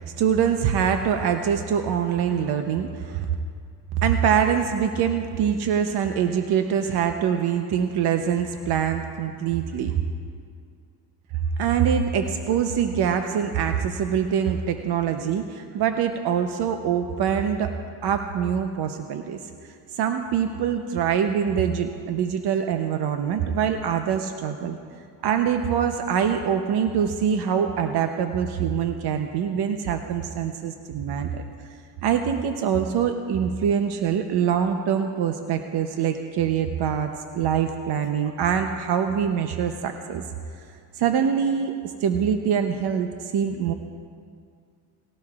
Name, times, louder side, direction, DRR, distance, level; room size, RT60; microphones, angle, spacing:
voice 1, 0.0-3.3 4.0-9.9 11.6-17.7 18.0-19.4 19.9-24.8 25.2-31.4 32.0-40.2 41.0-43.7, right 8 dB, 65° right, 6 dB, 0.8 m, -24 dB
19.0 x 17.0 x 2.4 m, 2.2 s
cardioid pair, 105°, 43 cm